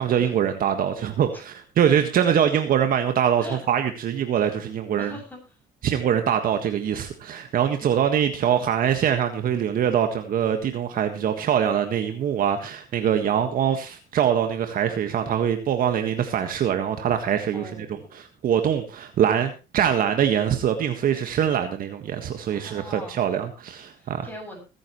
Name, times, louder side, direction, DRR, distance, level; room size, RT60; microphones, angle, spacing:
voice 1, 0.0-5.1 5.8-17.7 18.1-24.3, right 9 dB, 55° right, 1.6 m, -23 dB
voice 2, 5.0-5.4 7.8-8.0 13.3-13.6 17.5-18.1 22.5-23.3 24.0-24.6, left 1 dB, 10° left, 7.6 m, -41 dB
21.5 x 10.5 x 3.1 m
cardioid pair, 110°, 17 cm